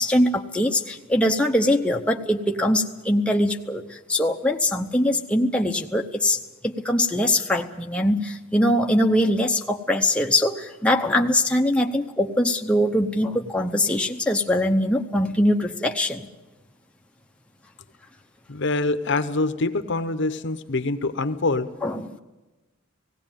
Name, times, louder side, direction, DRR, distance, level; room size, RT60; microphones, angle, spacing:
voice 1, 0.0-16.3 21.8-22.2, left 1 dB, 5° left, 2 dB, 0.8 m, -22 dB
voice 2, 18.5-21.7, left 3 dB, 55° left, 11 dB, 0.9 m, -25 dB
17.5 x 17.0 x 9.1 m, 1.1 s
head